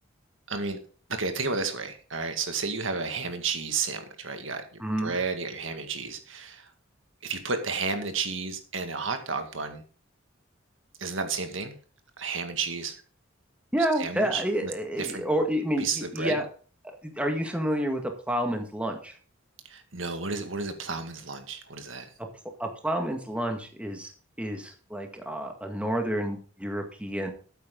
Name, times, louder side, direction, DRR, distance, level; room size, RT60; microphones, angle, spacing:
voice 1, 0.5-0.8 1.1-6.7 7.2-9.8 11.0-11.7 12.2-13.0 14.0-14.7 15.0-15.3 15.8-16.3 19.7-22.1, right 4 dB, 65° right, 6 dB, 2.0 m, -32 dB
voice 2, 4.8-5.2 13.7-16.5 17.0-19.1 22.6-24.1 24.4-27.3, right 1 dB, 5° right, 3 dB, 1.9 m, -29 dB
13.5 x 9.2 x 3.9 m, 0.40 s
head